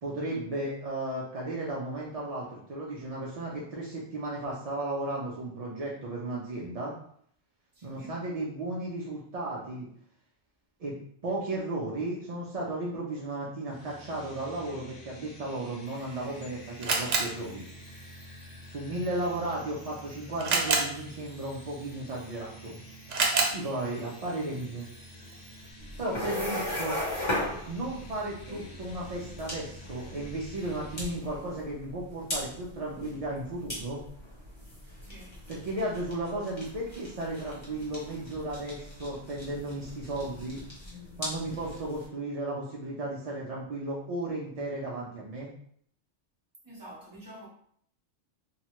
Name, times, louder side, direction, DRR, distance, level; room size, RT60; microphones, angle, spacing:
voice 1, 0.0-6.9 7.8-9.9 10.8-10.9 11.2-17.6 18.7-22.8 23.5-24.9 26.0-27.0 27.7-34.0 35.5-40.6 41.2-45.5, right 2 dB, 60° right, 0.4 m, -34 dB
voice 2, 7.7-8.2 19.0-19.2 25.9-26.5 35.0-35.4 46.6-47.5, equal, 20° right, 0.8 m, -48 dB
sound 1, 13.7-31.2, left 1 dB, 80° left, 1.0 m, -49 dB
Camera, 15.9-25.7, right 4 dB, 90° right, 1.0 m, -34 dB
sound 2, 25.8-42.0, left 1 dB, 25° left, 0.8 m, -38 dB
3.1 x 2.1 x 2.9 m
omnidirectional pair, 1.2 m